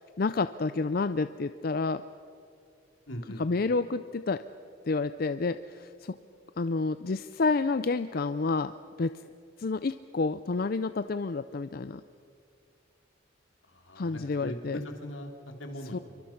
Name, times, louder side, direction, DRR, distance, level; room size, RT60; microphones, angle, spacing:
voice 1, 0.0-2.0 3.4-4.4 4.9-6.2 6.6-9.2 9.6-12.0 14.0-14.8 15.9-16.0, left 3 dB, 50° left, 12 dB, 0.5 m, -29 dB
voice 2, 3.1-3.4 13.7-16.0, equal, 80° left, 4 dB, 2.9 m, -40 dB
27.0 x 24.0 x 5.9 m, 2.4 s
head